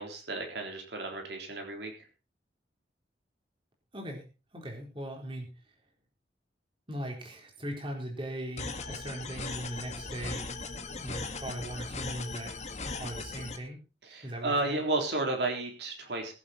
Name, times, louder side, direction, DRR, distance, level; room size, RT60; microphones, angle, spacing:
voice 1, 0.0-1.9 14.0-16.3, right 2 dB, 70° right, 2 dB, 3.7 m, -32 dB
voice 2, 3.9-5.5 6.9-10.5 11.0-12.6 13.0-13.8 14.2-14.8, right 1 dB, 30° right, 1 dB, 4.0 m, -39 dB
sound 1, 8.6-13.6, left 3 dB, 40° left, 1.8 m, -38 dB
22.0 x 7.9 x 4.3 m, 0.33 s
head